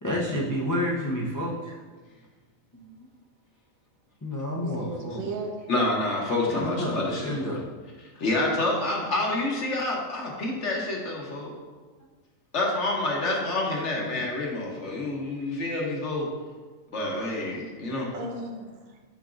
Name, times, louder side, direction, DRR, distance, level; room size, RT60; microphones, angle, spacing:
voice 1, 0.0-1.8 2.7-3.1 4.2-5.3 6.5-7.6 14.0-14.2, left 1 dB, 25° left, -4 dB, 0.4 m, -30 dB
voice 2, 4.6-5.7 9.1-9.2 18.1-19.0, right 2 dB, 80° right, 2 dB, 1.2 m, -36 dB
voice 3, 5.7-7.6 8.2-11.5 12.5-16.3 16.9-18.1, left 2 dB, 60° left, -1 dB, 1.3 m, -28 dB
6.9 x 5.7 x 2.5 m, 1.4 s
omnidirectional pair, 1.4 m